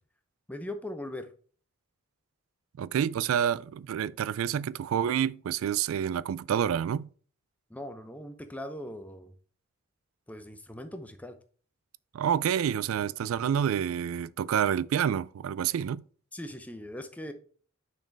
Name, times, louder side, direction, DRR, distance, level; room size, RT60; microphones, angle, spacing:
voice 1, 0.5-1.3 7.7-9.3 10.3-11.4 16.3-17.3, left 1 dB, 5° left, 0.7 m, -40 dB
voice 2, 2.8-7.1 12.1-16.0, right 9 dB, 75° right, 0.3 m, -28 dB
6.2 x 4.5 x 4.6 m
head